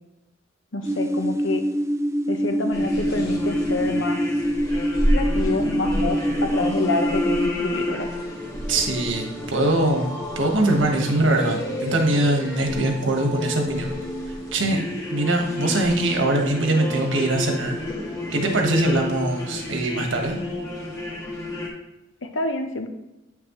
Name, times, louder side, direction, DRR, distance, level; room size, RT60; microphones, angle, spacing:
voice 1, 0.7-1.6 2.3-4.2 5.1-8.1 22.2-22.9, left 2 dB, 85° left, 6 dB, 1.0 m, -27 dB
sound 1, 0.8-7.5, equal, 15° right, 0.4 m, -25 dB
sound 2, 2.7-21.7, left 1 dB, 20° left, 1.9 m, -30 dB
voice 2, 8.7-10.1 10.3-13.9 14.3-14.8 15.1-17.8 18.3-20.4, right 2 dB, 90° right, 2 dB, 1.4 m, -22 dB
8.9 x 6.1 x 3.1 m, 0.97 s
head